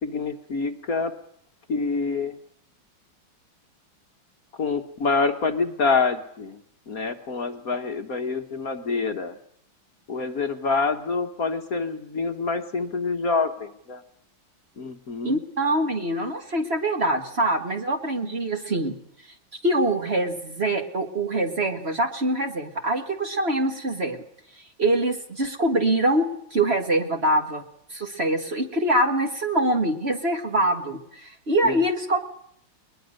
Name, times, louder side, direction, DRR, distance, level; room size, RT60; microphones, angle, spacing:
voice 1, 0.0-1.1 1.7-2.4 4.6-6.6 6.9-9.4 10.1-14.0 14.8-15.4 31.6-31.8, left 4 dB, 50° left, 6 dB, 1.5 m, -26 dB
voice 2, 15.2-19.0 19.6-24.2 24.8-27.6 27.9-32.2, right 1 dB, 30° right, 5 dB, 1.9 m, -24 dB
21.0 x 21.0 x 6.5 m, 0.71 s
omnidirectional pair, 2.2 m